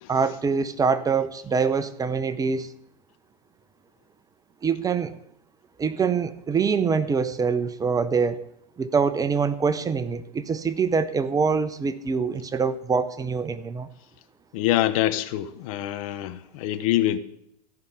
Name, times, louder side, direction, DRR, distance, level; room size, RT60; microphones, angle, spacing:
voice 1, 0.1-2.7 4.6-5.2 5.8-8.4 8.8-13.9, right 5 dB, 15° right, 0.7 m, -24 dB
voice 2, 14.5-17.2, left 13 dB, 55° left, 1.0 m, -25 dB
14.5 x 5.8 x 9.4 m
hypercardioid pair, 100°, 21 cm